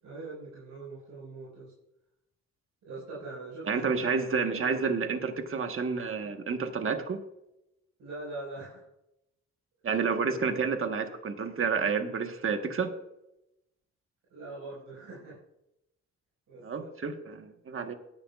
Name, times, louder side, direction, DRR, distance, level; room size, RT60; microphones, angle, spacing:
voice 1, 0.0-1.7 2.9-4.1 8.0-8.8 9.8-10.1 14.3-15.4 16.5-16.9, right 2 dB, 75° right, -7 dB, 5.1 m, -42 dB
voice 2, 3.7-7.2 9.8-12.9 16.6-17.9, right 5 dB, 45° right, 6 dB, 1.3 m, -30 dB
18.0 x 10.5 x 2.4 m, 0.86 s
cardioid pair, 80°, 30 cm